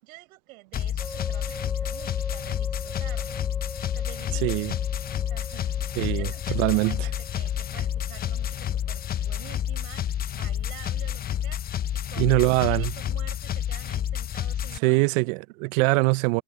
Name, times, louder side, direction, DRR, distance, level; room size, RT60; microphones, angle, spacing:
voice 1, 0.0-3.4 3.9-4.8 5.2-11.6 11.9-12.4 12.7-15.1, right 20 dB, 75° right, 6.0 m, -48 dB
sound 1, 0.7-14.8, left 10 dB, 20° left, 0.6 m, -29 dB
sound 2, 1.0-9.5, left 1 dB, 5° left, 2.7 m, -43 dB
voice 2, 4.4-4.7 6.0-7.1 12.2-12.9 14.8-16.4, right 25 dB, 60° right, 0.9 m, -23 dB
Drum kit / Snare drum / Bass drum, 4.6-12.3, left 27 dB, 60° left, 7.7 m, -60 dB
supercardioid pair, 120°, 43 cm